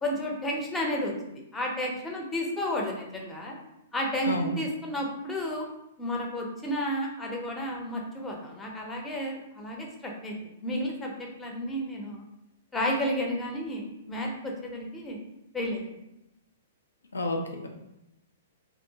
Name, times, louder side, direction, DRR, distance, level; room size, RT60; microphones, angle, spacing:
voice 1, 0.0-1.1 1.5-3.6 3.9-5.7 6.0-12.2 12.7-15.2 15.5-16.0, equal, 15° left, 0 dB, 0.6 m, -32 dB
voice 2, 17.1-17.7, left 2 dB, 80° left, 3 dB, 0.5 m, -30 dB
2.7 x 2.1 x 2.8 m, 0.88 s
figure-of-eight pair, 110°, 0 cm